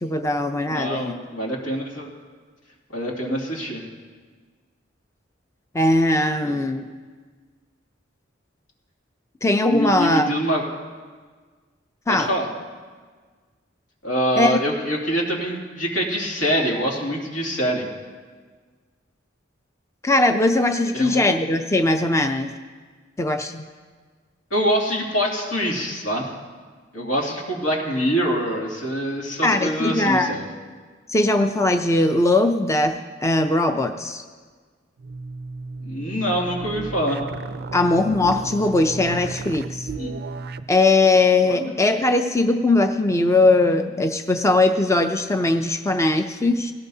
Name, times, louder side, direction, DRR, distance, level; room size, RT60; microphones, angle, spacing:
voice 1, 0.0-1.1 5.7-6.8 9.4-10.3 12.1-12.3 14.4-14.6 20.0-22.5 23.2-23.6 29.4-30.4 31.1-33.0 33.2-34.2 37.7-39.9 40.7-46.7, left 2 dB, 15° left, 6 dB, 0.5 m, -20 dB
voice 2, 0.7-2.1 2.9-3.8 6.4-6.6 9.6-10.6 12.1-12.5 14.0-17.8 20.9-21.2 24.5-26.3 26.9-30.5 35.8-37.2 40.0-40.1 41.4-41.7, equal, 85° left, -2 dB, 2.6 m, -25 dB
sound 1, 35.0-40.7, right 3 dB, 55° right, 0.4 m, -34 dB
18.0 x 17.0 x 2.8 m, 1.5 s
head